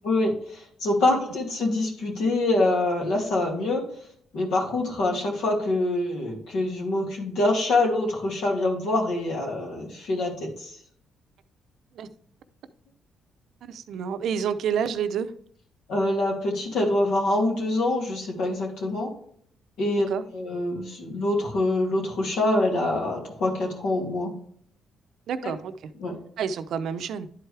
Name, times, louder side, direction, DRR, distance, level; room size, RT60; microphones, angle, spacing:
voice 1, 0.0-3.8 4.3-10.7 15.9-19.1 19.8-20.1 20.3-24.3 25.4-25.5 26.0-26.2, left 2 dB, 80° left, 2.6 m, -25 dB
voice 2, 13.6-15.3 20.1-20.2 25.3-25.7 26.4-27.3, right 7 dB, 75° right, 0.6 m, -29 dB
10.5 x 4.7 x 3.3 m
cardioid pair, 90°, 0 cm